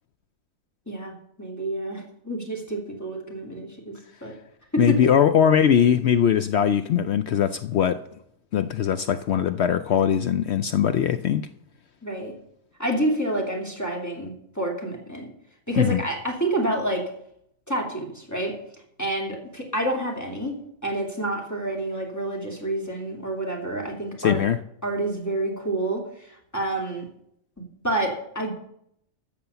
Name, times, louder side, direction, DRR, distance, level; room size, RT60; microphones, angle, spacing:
voice 1, 0.9-4.3 12.0-12.3 12.8-15.3 15.7-17.1 17.7-18.6 19.0-24.4 24.8-27.1 27.8-28.5, right 1 dB, 10° left, -1 dB, 2.6 m, -29 dB
voice 2, 4.8-8.0 8.5-11.5 15.8-16.0 24.2-24.6, left 9 dB, 65° left, 11 dB, 0.7 m, -21 dB
13.5 x 6.8 x 6.9 m, 0.72 s
omnidirectional pair, 1.4 m